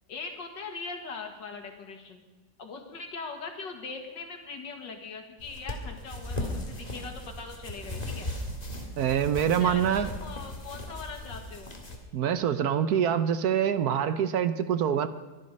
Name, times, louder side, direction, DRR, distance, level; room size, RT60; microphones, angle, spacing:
voice 1, 0.1-2.2 2.6-8.3 9.4-11.8, left 4 dB, 80° left, 4 dB, 2.6 m, -41 dB
sound 1, 5.4-12.0, left 1 dB, 20° left, 2.1 m, -37 dB
voice 2, 9.0-10.1 12.1-15.1, right 9 dB, 65° right, 12 dB, 1.2 m, -25 dB
23.5 x 11.0 x 5.4 m, 1.2 s
omnidirectional pair, 1.9 m